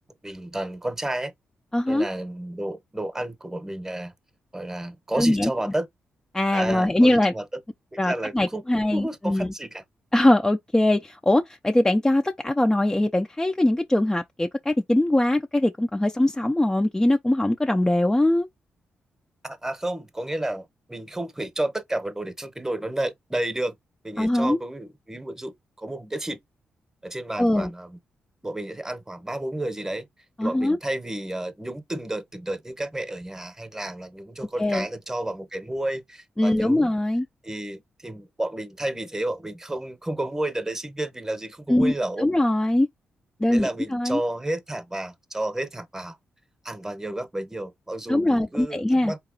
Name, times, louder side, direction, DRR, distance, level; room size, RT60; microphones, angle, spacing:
voice 1, 0.2-1.3 1.9-4.1 4.5-5.9 6.5-7.6 7.9-9.8 19.4-23.7 24.0-26.4 27.0-28.0 28.4-30.1 30.4-36.9 37.4-42.3 43.5-46.2 46.6-49.2, right 1 dB, 10° right, 0.9 m, -31 dB
voice 2, 1.7-2.1 5.2-5.5 6.3-7.3 8.0-9.5 10.1-18.5 24.2-24.6 27.4-27.7 30.4-30.8 34.6-34.9 36.4-37.3 41.7-42.9 43.4-44.2 48.1-49.1, left 1 dB, 15° left, 0.5 m, -22 dB
3.9 x 2.9 x 3.8 m
cardioid pair, 60°, 4 cm